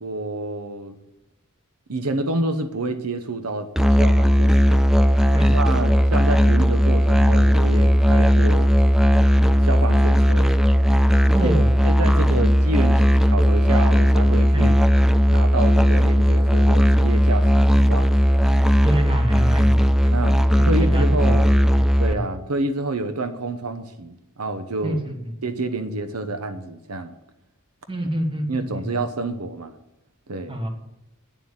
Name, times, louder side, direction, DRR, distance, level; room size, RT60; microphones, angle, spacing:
voice 1, 0.0-1.0 1.9-4.9 5.5-8.7 9.4-10.5 11.4-11.5 11.8-14.7 15.3-18.1 20.1-21.6 22.0-25.0 25.4-27.1 28.5-29.7 30.3-30.6, right 2 dB, 75° right, 8 dB, 0.9 m, -28 dB
Musical instrument, 3.8-22.1, equal, ahead, 0.4 m, -17 dB
voice 2, 5.3-5.8 11.3-11.7 14.5-14.7 18.8-19.9 20.8-21.3 21.7-21.9 22.1-22.2 24.8-25.3 27.9-29.0 30.5-30.7, right 1 dB, 25° right, 4 dB, 1.6 m, -27 dB
9.2 x 7.4 x 9.1 m, 0.85 s
head